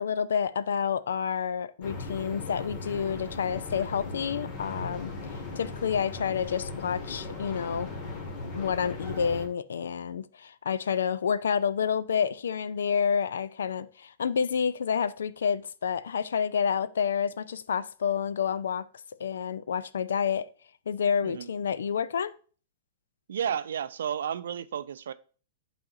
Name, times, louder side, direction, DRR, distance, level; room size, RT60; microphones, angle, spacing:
voice 1, 0.0-5.1 5.5-7.9 8.5-18.9 19.2-20.5 20.9-22.3, left 7 dB, 75° left, 0.4 m, -29 dB
sound 1, 1.8-9.5, left 3 dB, 45° left, 1.6 m, -38 dB
voice 2, 23.3-25.1, right 8 dB, 70° right, 0.4 m, -32 dB
11.0 x 4.2 x 2.5 m
hypercardioid pair, 105°, 0 cm